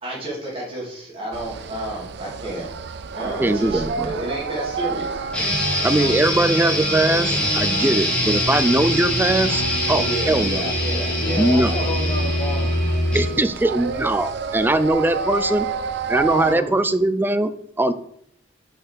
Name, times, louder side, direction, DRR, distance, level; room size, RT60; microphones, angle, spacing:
voice 1, 0.0-2.7 3.1-5.2 10.0-11.8, right 1 dB, 30° right, -5 dB, 2.8 m, -31 dB
sound 1, 1.3-16.5, right 5 dB, 65° right, 0.5 m, -31 dB
voice 2, 3.4-4.1 5.8-10.6 11.4-11.7 13.1-15.7 16.1-17.5 17.8-17.9, right 2 dB, 10° right, 12 dB, 0.4 m, -20 dB
sound 2, 5.3-13.3, left 1 dB, 5° left, 2.2 m, -23 dB
voice 3, 5.8-6.5 11.2-13.4 16.4-16.7, left 2 dB, 50° left, -9 dB, 2.6 m, -31 dB
5.8 x 5.6 x 5.2 m, 0.68 s
head